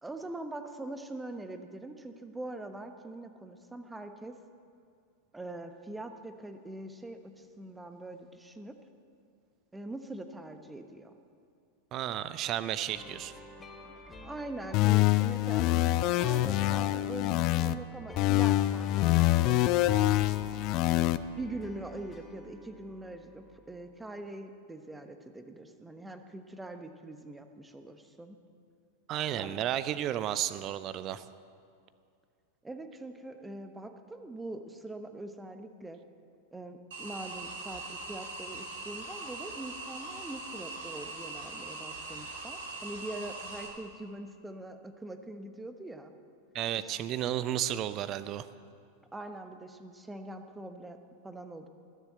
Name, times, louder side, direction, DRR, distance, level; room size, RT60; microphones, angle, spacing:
voice 1, 0.0-4.3 5.3-8.7 9.7-11.1 14.2-15.7 16.2-19.8 21.4-28.4 29.4-29.5 32.6-36.0 36.5-46.1 46.8-46.9 49.1-51.0 51.2-51.7, right 2 dB, 10° right, 8 dB, 1.0 m, -43 dB
voice 2, 11.9-13.3 29.1-31.2 46.5-48.5, right 11 dB, 35° right, 14 dB, 0.6 m, -33 dB
sound 1, 12.9-23.9, left 2 dB, 15° left, 1.4 m, -50 dB
sound 2, 14.7-17.7 18.2-21.2, left 15 dB, 40° left, 0.5 m, -25 dB
sound 3, 36.9-43.7, right 2 dB, 55° right, 3.0 m, -41 dB
20.0 x 7.2 x 8.0 m, 2.3 s
figure-of-eight pair, 90°, 0 cm